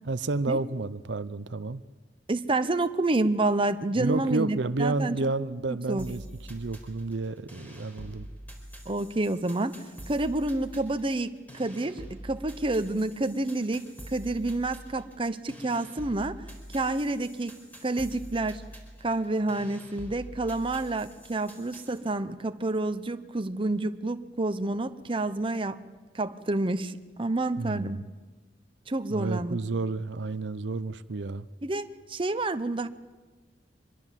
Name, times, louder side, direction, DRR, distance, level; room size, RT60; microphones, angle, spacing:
voice 1, 0.0-1.8 4.0-6.2 6.5-8.3 27.6-28.0 29.1-31.4, right 3 dB, 75° right, 14 dB, 0.7 m, -30 dB
voice 2, 2.3-5.3 5.7-6.1 8.9-9.7 10.1-16.4 16.7-18.6 19.0-25.8 26.1-28.0 28.9-29.6 31.6-32.9, right 2 dB, 30° right, 10 dB, 0.8 m, -29 dB
sound 1, 6.0-22.0, equal, 10° left, 4.4 m, -46 dB
25.0 x 22.0 x 7.5 m, 1.3 s
head